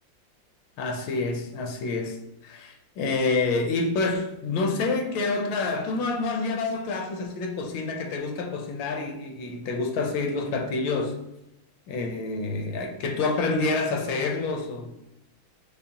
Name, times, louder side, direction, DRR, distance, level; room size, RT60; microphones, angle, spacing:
voice 1, 0.8-2.2 2.4-11.2 11.9-14.9, left 3 dB, 75° left, 1.3 m, -28 dB
5.4 x 2.0 x 2.7 m
omnidirectional pair, 2.1 m